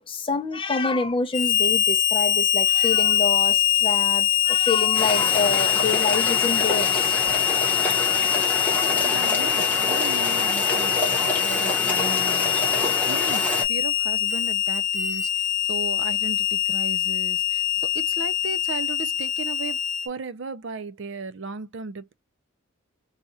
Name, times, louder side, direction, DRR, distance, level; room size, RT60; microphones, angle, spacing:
voice 1, 0.0-7.2, left 3 dB, 25° left, 0.6 m, -27 dB
Harmonica, 1.3-20.1, left 13 dB, 60° left, 0.8 m, -23 dB
sound 1, 4.9-13.6, left 1 dB, 5° left, 0.9 m, -27 dB
voice 2, 9.0-19.8 20.0-22.1, right 4 dB, 60° right, 0.5 m, -36 dB
2.8 x 2.3 x 4.1 m
head